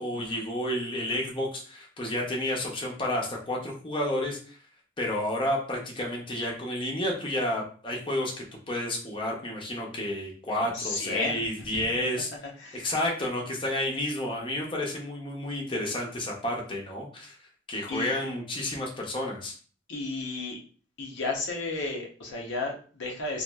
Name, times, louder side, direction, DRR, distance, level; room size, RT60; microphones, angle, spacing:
voice 1, 0.0-4.6 5.0-12.3 12.7-17.4 17.7-19.5, left 1 dB, 25° left, -1 dB, 0.6 m, -31 dB
voice 2, 10.5-11.4 12.6-12.9 17.9-18.1 19.9-20.6 21.0-23.4, left 3 dB, 90° left, 0 dB, 0.7 m, -33 dB
2.9 x 2.3 x 2.3 m, 0.42 s
head